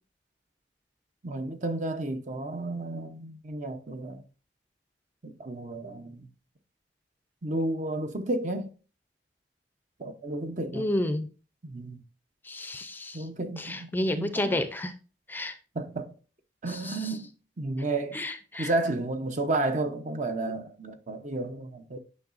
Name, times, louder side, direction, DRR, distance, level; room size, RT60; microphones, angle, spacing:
voice 1, 1.2-4.2 5.2-6.3 7.4-8.7 10.0-10.9 11.6-12.0 13.1-14.5 15.7-16.1 16.6-18.2 18.6-22.0, right 2 dB, 45° right, 0.7 m, -32 dB
voice 2, 10.7-11.3 12.4-13.3 13.6-14.9 15.3-15.6 16.7-17.2 18.1-18.7, left 1 dB, 10° left, 0.5 m, -31 dB
9.7 x 5.5 x 2.5 m
head